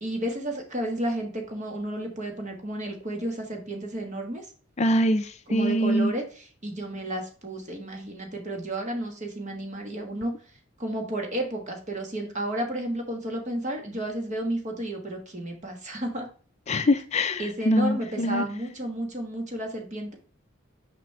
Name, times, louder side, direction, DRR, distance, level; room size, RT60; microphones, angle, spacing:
voice 1, 0.0-4.5 5.5-6.2 6.6-10.3 10.8-16.3 17.4-20.1, right 1 dB, 35° right, 3 dB, 1.4 m, -32 dB
voice 2, 4.8-6.1 16.7-18.5, left 1 dB, 30° left, 9 dB, 0.4 m, -24 dB
6.1 x 5.1 x 3.2 m, 0.42 s
head